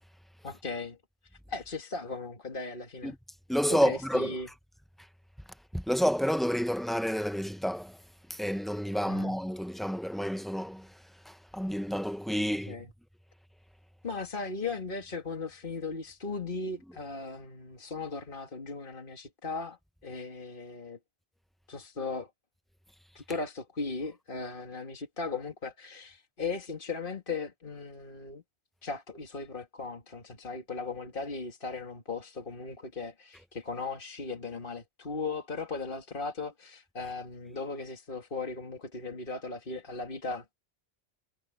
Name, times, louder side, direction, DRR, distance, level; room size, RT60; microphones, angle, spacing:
voice 1, 0.4-1.0 1.5-3.1 3.7-4.5 9.1-9.3 12.4-12.9 14.0-21.0 21.7-22.3 23.1-28.4 28.8-40.5, left 4 dB, 50° left, 2.3 m, -37 dB
voice 2, 3.5-4.3 5.7-8.0 8.3-11.0 11.2-12.8, equal, ahead, 0.5 m, -29 dB
omnidirectional pair, 1.1 m